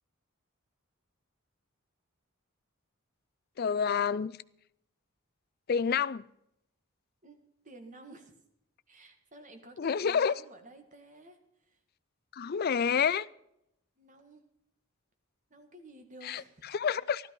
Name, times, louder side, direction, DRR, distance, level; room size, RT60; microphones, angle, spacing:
voice 1, 3.6-4.4 5.7-6.2 9.8-10.3 12.3-13.3 16.2-16.4 16.7-17.3, left 6 dB, 45° left, 0.4 m, -28 dB
voice 2, 7.6-8.3 8.9-11.4 11.7-11.8 14.0-14.4 15.5-16.8, right 2 dB, 35° right, 1.9 m, -52 dB
13.0 x 13.0 x 5.3 m
head